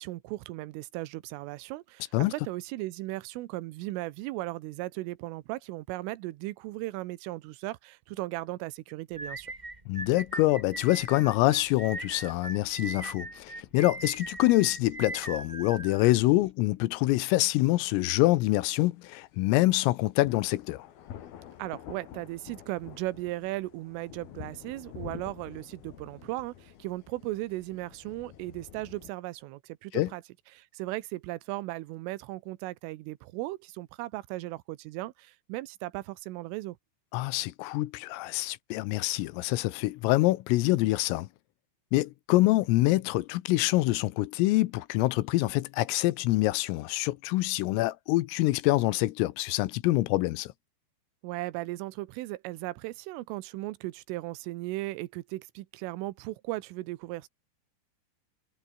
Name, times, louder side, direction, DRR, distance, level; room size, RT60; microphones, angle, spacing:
voice 1, 0.0-9.5 21.6-30.2 30.5-36.8 51.2-57.3, right 19 dB, 80° right, 3.5 m, -37 dB
sound 1, 9.1-16.5, right 2 dB, 35° right, 0.7 m, -40 dB
voice 2, 9.9-20.9 29.9-30.1 37.1-41.3 41.9-50.5, left 18 dB, 85° left, 3.6 m, -25 dB
sound 2, 20.2-29.1, left 10 dB, 60° left, 3.4 m, -48 dB
omnidirectional pair, 5.8 m